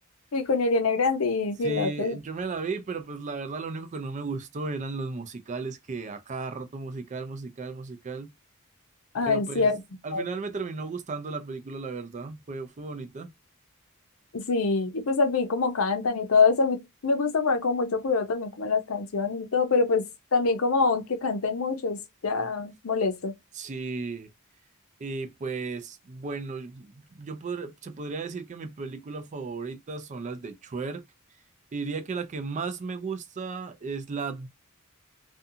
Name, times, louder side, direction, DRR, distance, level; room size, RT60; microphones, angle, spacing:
voice 1, 0.3-2.2 9.1-9.8 10.1-10.2 14.3-20.0 20.3-23.3, left 4 dB, 70° left, 0.6 m, -25 dB
voice 2, 1.6-8.3 9.2-9.7 10.0-13.3 23.5-24.3 25.0-31.0 31.7-34.5, right 4 dB, 35° right, 0.4 m, -35 dB
2.5 x 2.3 x 2.6 m
head